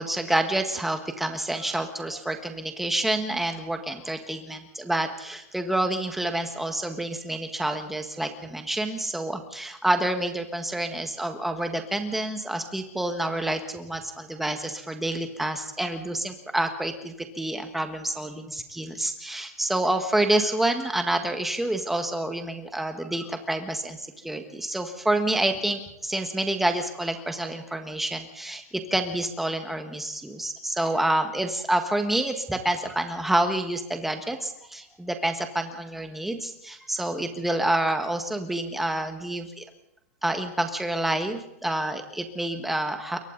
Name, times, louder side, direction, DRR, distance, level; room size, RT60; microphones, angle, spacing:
voice 1, 0.0-24.0 24.2-28.6 28.9-39.6 40.2-43.2, right 1 dB, ahead, 5 dB, 1.6 m, -28 dB
28.0 x 23.0 x 4.1 m, 0.79 s
supercardioid pair, 165°, 8 cm